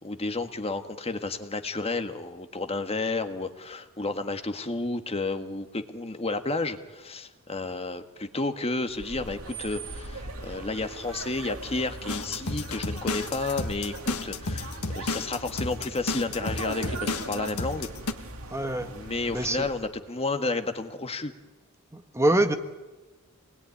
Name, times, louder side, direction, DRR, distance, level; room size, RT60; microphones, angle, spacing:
voice 1, 0.0-17.9 18.8-21.3, left 3 dB, 25° left, 8 dB, 1.7 m, -31 dB
sound 1, 8.9-20.0, right 2 dB, 75° right, 2.8 m, -40 dB
sound 2, 12.1-18.1, left 2 dB, 75° left, 1.8 m, -32 dB
voice 2, 18.5-18.9 19.3-19.7 21.9-22.5, right 1 dB, 15° right, 7 dB, 1.4 m, -25 dB
27.5 x 20.5 x 9.8 m, 1.2 s
head